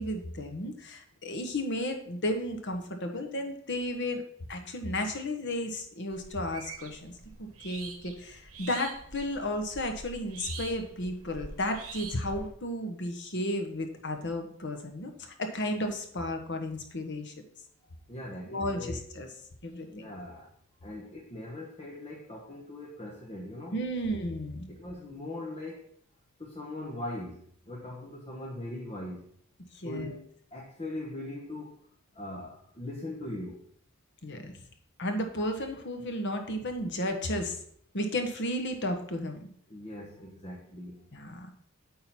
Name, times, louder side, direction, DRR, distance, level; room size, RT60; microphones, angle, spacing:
voice 1, 0.0-4.2 4.5-7.1 7.4-17.3 18.5-19.3 19.6-20.1 23.7-24.7 29.7-30.1 34.2-34.5 35.0-37.6 37.9-39.5 41.1-41.5, left 1 dB, 55° left, 5 dB, 1.2 m, -33 dB
sound 1, 6.1-12.5, right 4 dB, 80° right, 1.3 m, -45 dB
voice 2, 18.1-19.1 19.9-20.5 20.8-23.8 24.7-25.9 26.4-29.3 29.8-31.8 32.1-33.7 39.7-41.1, left 1 dB, 25° left, -3 dB, 1.1 m, -40 dB
8.8 x 3.8 x 5.8 m, 0.64 s
head